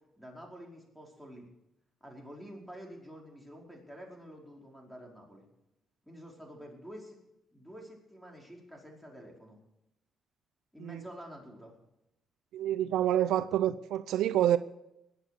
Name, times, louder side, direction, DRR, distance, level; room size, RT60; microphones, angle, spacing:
voice 1, 0.2-1.5 2.0-5.4 6.0-7.2 7.5-9.6 10.7-11.7, equal, ahead, 4.9 m, -48 dB
voice 2, 12.5-14.6, right 11 dB, 85° right, 0.5 m, -27 dB
20.5 x 8.3 x 6.8 m
cardioid pair, 90°, 0 cm